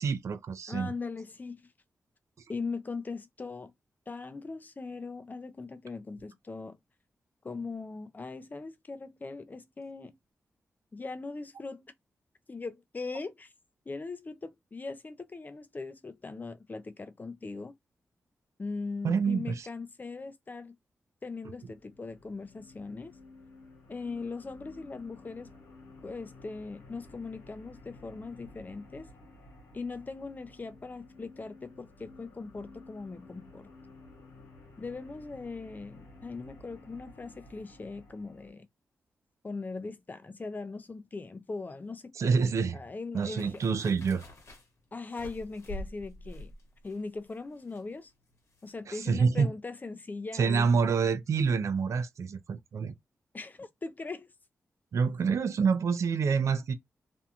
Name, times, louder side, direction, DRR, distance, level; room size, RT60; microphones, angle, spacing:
voice 1, 0.0-0.9 19.0-19.7 42.1-42.8 43.1-44.2 48.9-49.5 50.3-52.9 54.9-56.7, right 5 dB, 70° right, 0.4 m, -27 dB
voice 2, 0.7-1.7 2.5-3.7 4.1-6.8 7.4-10.1 10.9-11.8 12.5-13.5 13.9-17.8 18.6-20.8 21.2-23.2 23.9-25.5 26.0-29.1 29.7-33.7 34.8-38.7 39.4-42.5 42.7-43.6 44.9-46.5 46.8-48.1 48.6-50.7 53.3-54.3, left 3 dB, 35° left, 0.5 m, -40 dB
sound 1, 21.5-38.5, left 2 dB, 90° left, 0.9 m, -53 dB
sound 2, 43.4-48.8 49.0-49.1, left 1 dB, 60° left, 1.0 m, -46 dB
2.5 x 2.2 x 2.8 m
cardioid pair, 65°, 5 cm